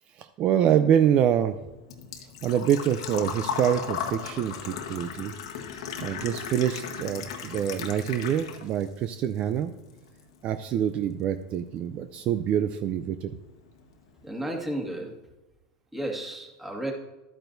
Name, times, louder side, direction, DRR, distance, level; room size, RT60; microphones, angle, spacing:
voice 1, 0.2-1.6 2.4-5.3 6.0-9.7 10.4-13.4, right 9 dB, 45° right, 9 dB, 0.4 m, -25 dB
Engine / Trickle dribble / Fill (with liquid), 0.9-8.9 9.2-10.2 10.5-10.6 12.5-12.6 12.8-13.1 13.5-13.6 13.8-13.9, left 7 dB, 90° left, 1.3 m, -36 dB
voice 2, 14.2-15.1 15.9-16.9, right 1 dB, 5° right, 0 dB, 1.9 m, -33 dB
12.0 x 8.8 x 2.7 m, 1.0 s
supercardioid pair, 120°, 3 cm